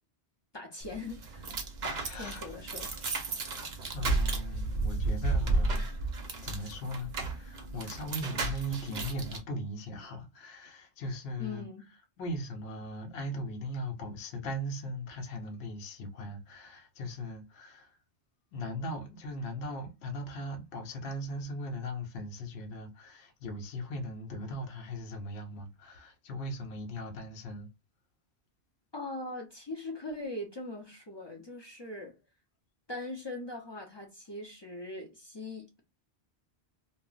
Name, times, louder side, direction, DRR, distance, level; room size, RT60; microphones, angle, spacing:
voice 1, 0.5-1.6 2.2-2.9 11.4-11.8 28.9-32.1 32.9-35.8, left 2 dB, 35° left, 0.5 m, -41 dB
sound 1, 0.8-9.4, right 3 dB, 55° right, 0.6 m, -33 dB
voice 2, 1.8-2.6 3.0-3.2 3.9-5.9 6.4-18.0 18.5-27.7, equal, 75° left, 0.9 m, -39 dB
2.1 x 2.0 x 3.7 m
omnidirectional pair, 1.1 m